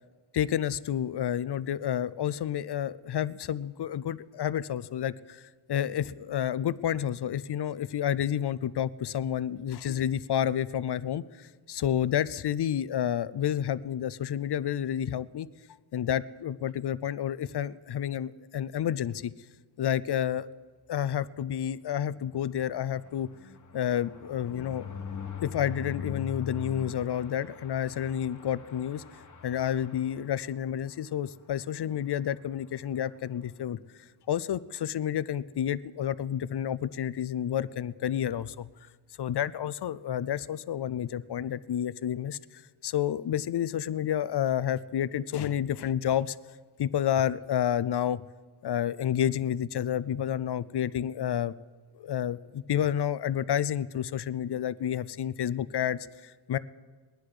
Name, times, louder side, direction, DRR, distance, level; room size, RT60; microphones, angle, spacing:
voice 1, 0.3-15.5 15.9-19.3 19.8-20.5 20.9-23.3 23.7-24.9 25.4-29.0 29.4-33.8 34.3-38.7 39.2-46.4 46.8-48.3 48.6-51.5 52.0-56.6, left 10 dB, 55° left, 17 dB, 0.5 m, -30 dB
sound 1, 22.0-30.8 31.2-31.4 31.6-31.7 32.0-32.3, left 5 dB, 35° left, 1.3 m, -42 dB
21.0 x 10.5 x 4.9 m, 1.4 s
wide cardioid pair, 120°, 50 cm